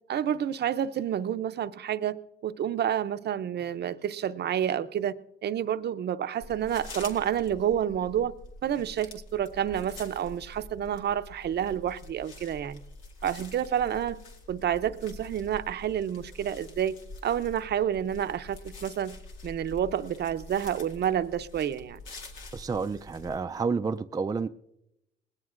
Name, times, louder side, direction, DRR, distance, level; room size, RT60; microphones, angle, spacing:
voice 1, 0.1-5.1 5.4-8.3 8.6-12.8 13.2-14.2 14.5-19.2 19.4-22.0, right 9 dB, 55° right, 0.6 m, -29 dB
sound 1, 6.4-23.4, left 2 dB, 90° left, 2.0 m, -46 dB
voice 2, 22.5-24.5, right 5 dB, 20° right, 0.4 m, -30 dB
20.0 x 17.0 x 2.5 m
cardioid pair, 90°, 20 cm